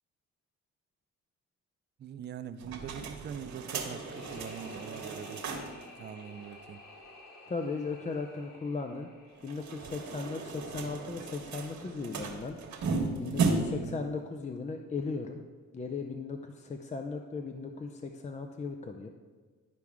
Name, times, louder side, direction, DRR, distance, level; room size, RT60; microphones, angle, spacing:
voice 1, 2.0-5.6 6.0-6.8 13.7-14.0, right 8 dB, 35° right, 10 dB, 0.4 m, -43 dB
sound 1, 2.6-5.9 6.2-6.3 6.5-6.6 9.4-13.9, right 3 dB, 65° right, 1.3 m, -35 dB
sound 2, 3.8-10.8, left 2 dB, 70° left, 2.0 m, -52 dB
voice 2, 7.5-9.1 9.4-12.6 13.2-15.4 15.7-19.1, left 4 dB, 25° left, 4 dB, 0.5 m, -37 dB
11.5 x 4.7 x 3.6 m, 1.4 s
cardioid pair, 90°, 30 cm